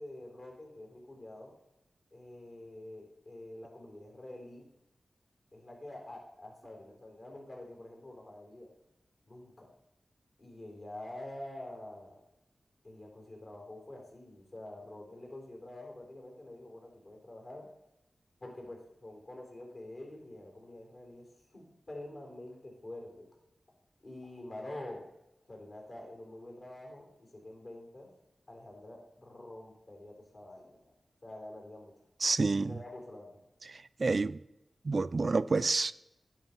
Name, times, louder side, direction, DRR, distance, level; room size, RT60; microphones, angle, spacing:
voice 1, 0.0-1.5 2.1-4.7 5.5-8.7 9.3-9.7 10.4-12.2 12.8-17.7 18.4-21.3 21.5-23.3 24.0-25.1 25.5-28.1 28.5-30.8 31.2-31.9 32.6-33.4, left 1 dB, 55° left, 3.9 m, -47 dB
voice 2, 32.2-32.8 33.7-34.4 34.8-35.9, right 3 dB, 55° right, 0.3 m, -29 dB
10.5 x 5.5 x 5.8 m
wide cardioid pair, 65°, 0 cm